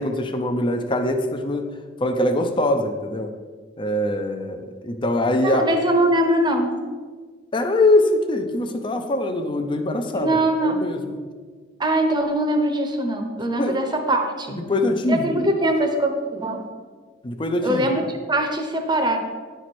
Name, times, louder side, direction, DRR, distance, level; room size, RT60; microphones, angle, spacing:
voice 1, 0.0-1.7 2.0-3.3 3.8-5.6 7.5-10.4 10.6-11.0 13.6-13.8 14.7-15.5 17.2-17.9, left 1 dB, 30° left, 5 dB, 0.5 m, -22 dB
voice 2, 5.4-6.8 10.1-10.8 11.8-14.6 15.1-16.6 17.6-18.0 18.3-19.2, right 1 dB, 25° right, 4 dB, 0.9 m, -22 dB
10.0 x 4.6 x 4.2 m, 1.5 s
head